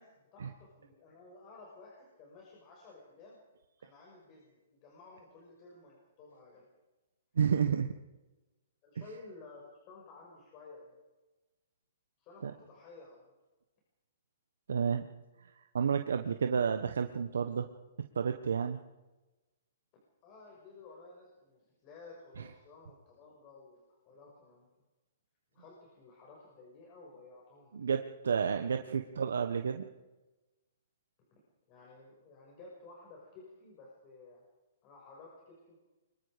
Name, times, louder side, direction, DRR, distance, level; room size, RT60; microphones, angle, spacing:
voice 1, 0.0-3.4 3.8-6.7 8.8-11.0 12.2-13.3 20.2-24.7 25.5-27.9 31.3-31.4 31.7-34.4 34.8-35.8, left 3 dB, 30° left, -2 dB, 6.3 m, -54 dB
voice 2, 7.4-7.9 12.4-12.5 14.7-15.1 15.7-17.7 18.1-18.8 27.7-29.8, right 6 dB, 85° right, 6 dB, 1.3 m, -30 dB
24.0 x 21.5 x 5.2 m, 1.1 s
hypercardioid pair, 150°, 0 cm